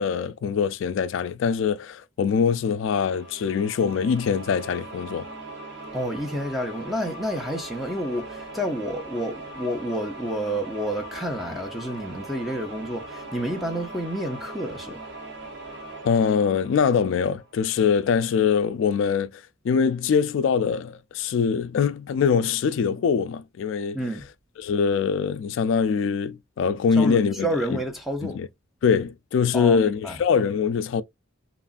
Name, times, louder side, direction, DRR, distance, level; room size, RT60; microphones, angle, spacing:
voice 1, 0.0-5.3 16.0-24.0 24.6-27.5 28.2-28.5 28.8-31.0, left 6 dB, 65° left, 0.3 m, -23 dB
sound 1, 3.1-17.7, right 2 dB, 60° right, 1.0 m, -40 dB
voice 2, 5.9-15.0 23.9-24.3 26.9-28.4 29.5-30.2, equal, ahead, 0.6 m, -29 dB
3.0 x 2.4 x 2.4 m
head